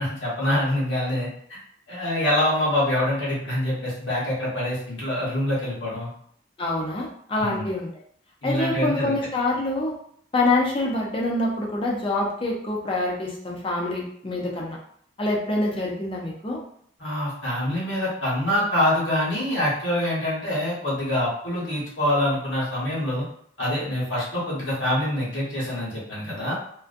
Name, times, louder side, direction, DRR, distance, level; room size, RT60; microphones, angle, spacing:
voice 1, 0.0-1.6 1.9-6.1 7.4-7.7 8.4-9.2 17.0-23.2 23.6-26.5, left 1 dB, 80° left, -6 dB, 1.1 m, -25 dB
voice 2, 6.6-7.9 8.4-9.9 10.3-14.8 15.2-16.6, left 2 dB, 30° left, -2 dB, 0.5 m, -26 dB
2.5 x 2.1 x 2.5 m, 0.64 s
head